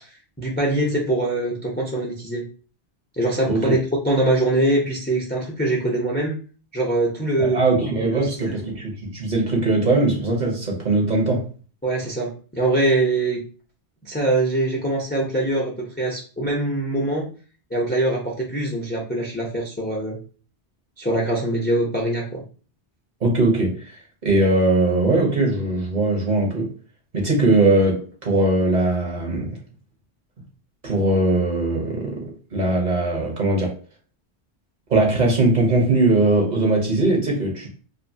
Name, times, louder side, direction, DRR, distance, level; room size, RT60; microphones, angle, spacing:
voice 1, 0.4-2.5 3.2-3.8 4.0-6.4 6.7-7.6 8.1-8.7 11.8-13.4 14.0-17.3 17.7-20.2 21.0-22.4, right 2 dB, 15° left, 0.4 m, -23 dB
voice 2, 7.4-11.5 23.2-24.0 24.2-26.7 27.1-29.6 30.8-33.7 34.9-37.8, right 2 dB, 45° right, 0.8 m, -20 dB
2.6 x 2.5 x 2.6 m
omnidirectional pair, 1.1 m